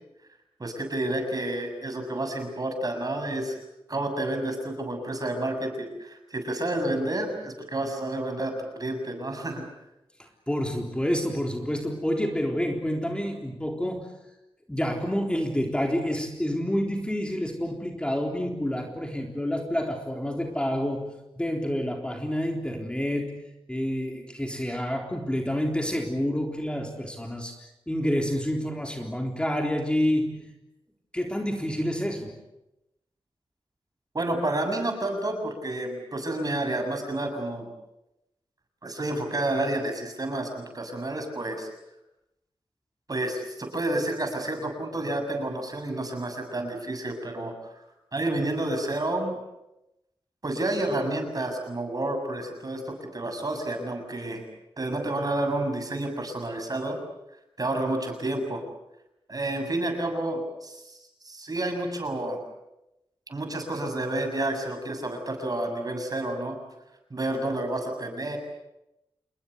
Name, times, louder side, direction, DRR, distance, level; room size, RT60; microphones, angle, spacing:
voice 1, 0.6-3.5 3.9-9.6 34.1-37.7 38.8-41.7 43.1-47.7 48.1-49.4 50.4-54.4 54.8-57.0 57.6-58.6 59.3-61.0 61.2-62.4 63.3-66.6 67.1-68.4, right 1 dB, 40° right, 5 dB, 7.3 m, -30 dB
voice 2, 10.2-14.1 14.7-27.5 27.9-30.5 31.1-32.4, equal, 10° left, 2 dB, 3.7 m, -28 dB
28.5 x 21.0 x 8.2 m, 0.90 s
cardioid pair, 65°, 10 cm